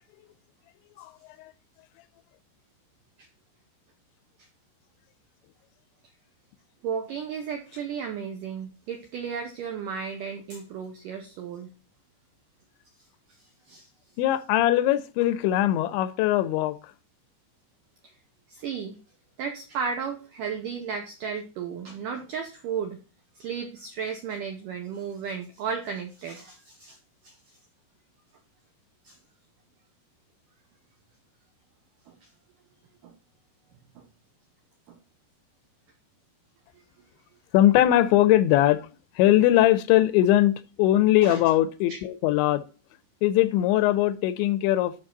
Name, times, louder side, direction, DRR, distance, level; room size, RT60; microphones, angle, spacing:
voice 1, 6.8-11.7 13.7-13.9 18.5-19.0 19.4-23.0 23.4-27.0 27.2-27.3 29.0-29.2 32.1-32.2 33.0-33.2 34.0-34.1 34.9-35.0 36.7-36.8 41.2-41.4 41.9-42.0, right 6 dB, 85° right, 1.9 m, -34 dB
voice 2, 14.2-16.8 37.5-38.9 39.2-42.6 43.2-44.9, left 13 dB, 90° left, 3.0 m, -21 dB
11.5 x 5.4 x 3.9 m
omnidirectional pair, 5.2 m